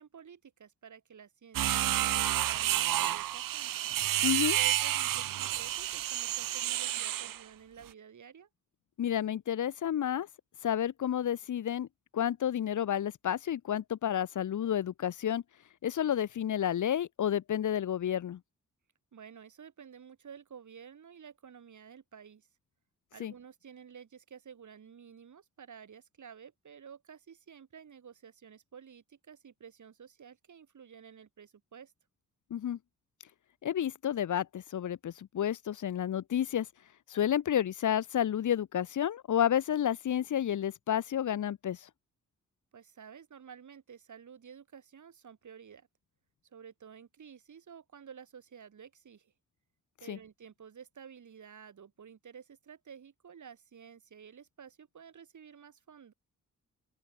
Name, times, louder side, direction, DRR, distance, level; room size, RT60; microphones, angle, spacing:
voice 1, 0.0-3.7 4.5-8.5 19.1-22.5 23.1-31.9 42.7-45.9 46.5-49.3 50.0-56.1, right 7 dB, 65° right, 5.8 m, -52 dB
sound 1, 1.5-7.4, right 13 dB, 85° right, 0.6 m, -30 dB
voice 2, 4.2-4.6 9.0-10.3 10.6-11.9 12.1-15.4 15.8-18.4 23.2-23.3 32.5-32.8 33.6-36.7 37.1-41.9 50.1-50.2, left 10 dB, 65° left, 0.8 m, -30 dB
open air
wide cardioid pair, 170°, 32 cm